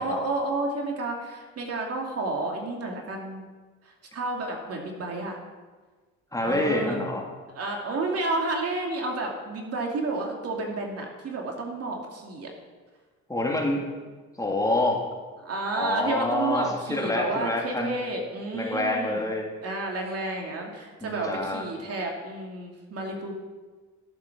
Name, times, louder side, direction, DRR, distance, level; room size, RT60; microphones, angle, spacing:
voice 1, 0.0-3.5 3.8-5.4 6.4-7.0 7.5-12.5 15.4-19.3 19.6-23.3, right 2 dB, 50° right, 1 dB, 2.6 m, -31 dB
voice 2, 6.3-7.2 13.3-13.8 14.4-15.1 15.8-18.0 18.5-19.5 21.0-21.7, left 2 dB, 10° left, 0 dB, 2.4 m, -27 dB
12.0 x 7.4 x 6.0 m, 1.4 s
supercardioid pair, 70°, 31 cm